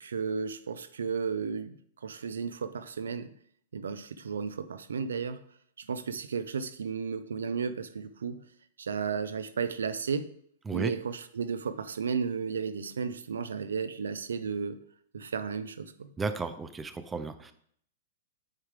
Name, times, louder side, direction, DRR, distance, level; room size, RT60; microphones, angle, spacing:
voice 1, 0.0-3.3 3.7-5.4 5.8-8.4 8.8-10.3 10.7-14.8 15.1-16.1, right 6 dB, 85° right, 0.5 m, -33 dB
voice 2, 16.2-17.5, right 4 dB, 15° right, 0.6 m, -33 dB
8.9 x 4.7 x 3.7 m
hypercardioid pair, 115°, 0 cm